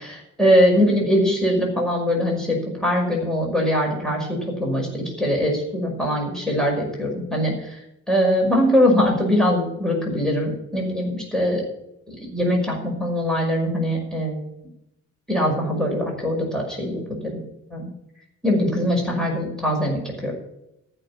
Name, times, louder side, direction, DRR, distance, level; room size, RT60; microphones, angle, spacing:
voice 1, 0.4-7.5 8.1-11.6 12.1-14.5 15.3-17.4 17.7-17.9 18.4-20.3, equal, ahead, -1 dB, 5.6 m, -22 dB
14.0 x 6.6 x 8.7 m, 0.84 s
cardioid pair, 90°, 30 cm